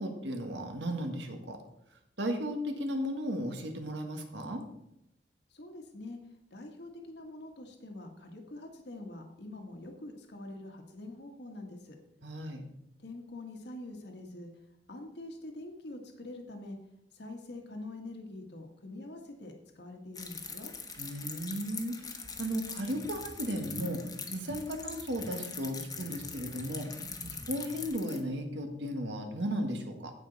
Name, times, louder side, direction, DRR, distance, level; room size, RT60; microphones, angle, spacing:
voice 1, 0.0-1.6 2.2-4.6 12.2-12.6 21.0-24.0 24.3-26.9 27.5-30.1, equal, 80° right, 4 dB, 1.6 m, -35 dB
voice 2, 5.5-6.2 6.5-11.9 13.0-14.5 14.9-16.8 17.1-20.7, left 2 dB, 65° left, 3 dB, 1.5 m, -45 dB
sound 1, 20.1-28.2, left 5 dB, 20° left, 1.1 m, -43 dB
sound 2, 22.9-27.9, right 1 dB, 60° right, 1.3 m, -49 dB
15.5 x 5.4 x 4.0 m, 0.81 s
head